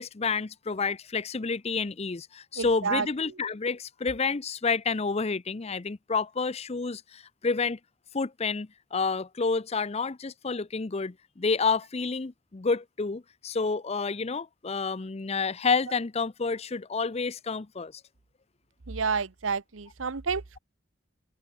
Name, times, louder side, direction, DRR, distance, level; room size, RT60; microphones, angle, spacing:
voice 1, 0.0-7.8 8.1-17.9, left 4 dB, 30° left, 0.6 m, -29 dB
voice 2, 2.6-3.1 18.9-20.6, right 5 dB, 85° right, 1.0 m, -30 dB
open air
head